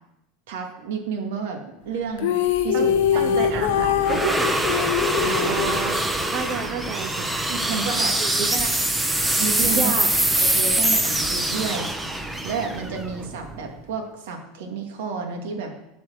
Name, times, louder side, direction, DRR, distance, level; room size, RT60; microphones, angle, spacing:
voice 1, 0.5-2.4 2.6-4.2 5.2-5.7 7.5-8.2 8.5-8.8 9.4-9.9 10.4-11.9 12.4-15.7, right 5 dB, 85° right, 3 dB, 2.3 m, -31 dB
sound 1, 2.2-6.4, left 10 dB, 75° left, 1.2 m, -23 dB
sound 2, 2.5-13.8, right 1 dB, 5° right, 0.8 m, -24 dB
voice 2, 3.1-4.6 5.4-7.3 8.2-8.5 9.7-10.1, right 6 dB, 40° right, 5 dB, 0.8 m, -30 dB
12.0 x 4.8 x 7.8 m, 0.86 s
supercardioid pair, 165°, 0 cm